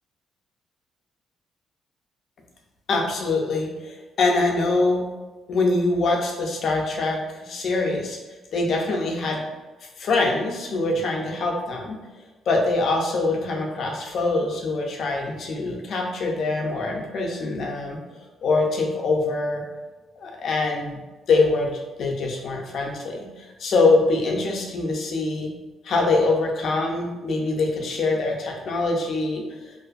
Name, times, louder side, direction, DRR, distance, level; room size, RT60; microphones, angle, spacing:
voice 1, 2.9-5.0 5.5-8.2 8.5-9.4 10.0-12.0 12.5-18.0 18.4-19.6 20.2-21.0 21.3-25.5 25.8-29.7, left 3 dB, 60° left, 0 dB, 0.5 m, -24 dB
2.5 x 2.4 x 2.4 m, 1.2 s
cardioid pair, 90°, 0 cm